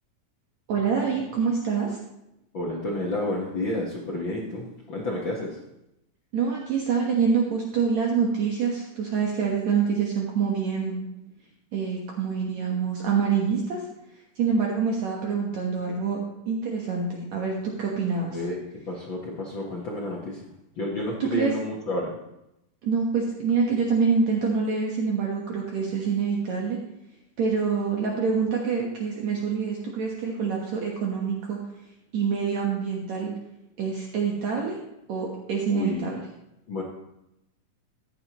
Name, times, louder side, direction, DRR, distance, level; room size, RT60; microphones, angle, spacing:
voice 1, 0.7-2.0 6.3-11.0 11.7-13.9 14.4-16.2 16.5-18.4 21.2-21.5 22.8-26.8 27.4-31.6 32.1-33.3 33.8-34.8 35.1-36.2, right 5 dB, 60° right, -1 dB, 2.4 m, -26 dB
voice 2, 2.5-5.6 18.3-20.5 20.8-22.1 35.7-36.1 36.7-36.8, left 1 dB, 50° left, -3 dB, 1.6 m, -30 dB
14.0 x 10.0 x 3.0 m, 0.86 s
omnidirectional pair, 3.9 m